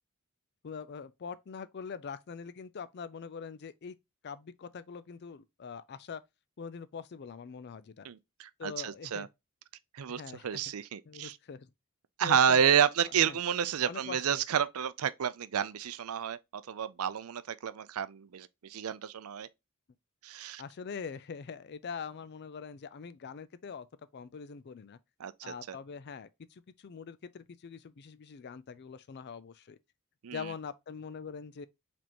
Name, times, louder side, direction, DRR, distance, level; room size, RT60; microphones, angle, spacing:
voice 1, 0.6-3.9 4.2-6.2 6.6-8.1 8.6-9.3 10.1-10.6 11.1-11.7 12.2-12.7 13.0-13.4 13.9-14.4 20.6-23.9 24.1-25.0 25.4-29.8 30.3-31.7, left 6 dB, 50° left, 0.4 m, -43 dB
voice 2, 8.0-9.3 9.9-11.4 12.2-16.4 16.7-19.5 20.2-20.6 25.2-25.8 30.2-30.5, right 8 dB, 80° right, 0.5 m, -30 dB
4.9 x 3.5 x 2.9 m
head